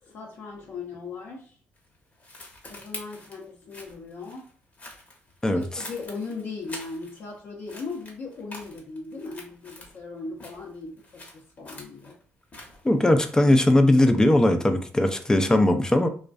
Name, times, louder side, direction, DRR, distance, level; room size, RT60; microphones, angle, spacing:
voice 1, 0.0-1.6 2.6-4.5 5.5-12.2, left 4 dB, 55° left, -1 dB, 0.6 m, -38 dB
sound 1, 1.8-7.4 7.7-10.0 10.3-13.7, left 2 dB, 35° left, 0.9 m, -46 dB
voice 2, 12.8-16.1, left 1 dB, 15° left, 7 dB, 0.4 m, -19 dB
2.4 x 2.1 x 2.3 m, 0.43 s
supercardioid pair, 65°, 5 cm